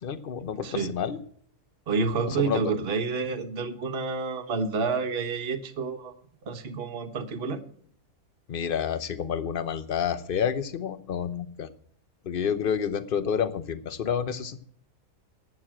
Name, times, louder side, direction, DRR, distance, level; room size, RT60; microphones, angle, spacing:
voice 1, 0.0-1.2 2.3-2.7 8.5-11.7 12.2-14.6, left 7 dB, 45° left, 13 dB, 0.8 m, -29 dB
voice 2, 1.9-6.1 6.4-7.6, right 4 dB, 40° right, 6 dB, 1.2 m, -29 dB
11.5 x 8.7 x 7.5 m, 0.62 s
omnidirectional pair, 1.7 m